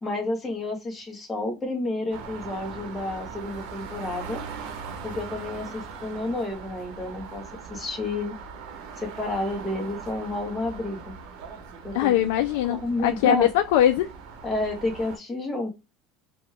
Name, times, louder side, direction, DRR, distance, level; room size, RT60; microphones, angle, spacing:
voice 1, 0.0-4.4 5.0-7.4 7.7-8.3 9.0-11.1 11.8-12.3 12.7-13.5 14.4-15.7, left 2 dB, 15° left, 0.9 m, -30 dB
ambience railway station square traffic city Voronezh, 2.1-15.2, right 5 dB, 70° right, 0.9 m, -40 dB
voice 2, 11.9-14.1, left 11 dB, 80° left, 0.3 m, -21 dB
2.9 x 2.2 x 3.2 m
supercardioid pair, 135°, 0 cm